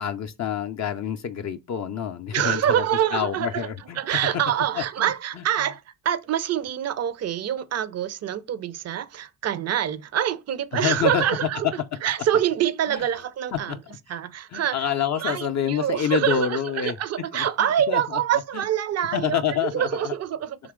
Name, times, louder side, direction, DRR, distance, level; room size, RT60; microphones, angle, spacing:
voice 1, 0.0-2.8 3.1-4.2 4.8-5.4 10.7-11.2 11.6-11.7 12.9-13.0 13.5-13.8 14.5-17.0 17.3-18.2 18.5-18.6 19.1-20.1, left 8 dB, 40° left, 0.5 m, -27 dB
voice 2, 2.3-3.7 4.0-11.7 12.0-13.8 14.1-14.9 15.2-20.6, right 10 dB, 35° right, 0.5 m, -25 dB
3.9 x 3.0 x 3.6 m
hypercardioid pair, 55°, 44 cm